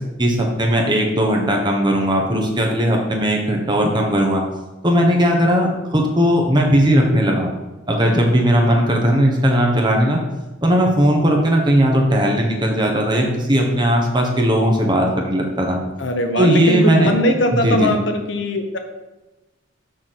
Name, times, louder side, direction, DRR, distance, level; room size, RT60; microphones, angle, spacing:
voice 1, 0.2-4.4 4.8-7.5 7.9-10.2 10.6-15.8 16.4-17.1 17.5-17.9, equal, 20° right, 0 dB, 1.3 m, -17 dB
voice 2, 16.0-18.8, left 1 dB, 60° left, 5 dB, 1.0 m, -20 dB
6.8 x 5.7 x 6.1 m, 1.1 s
head